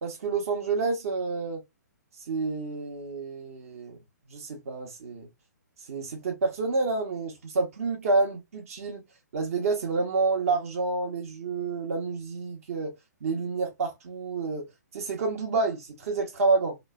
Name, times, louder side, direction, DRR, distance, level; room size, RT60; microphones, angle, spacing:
voice 1, 0.0-1.6 2.3-4.0 4.3-5.3 5.9-9.0 9.3-12.9 13.2-14.7 14.9-16.8, right 3 dB, 50° right, 0.8 m, -28 dB
3.0 x 2.0 x 2.2 m
figure-of-eight pair, 125°, 10 cm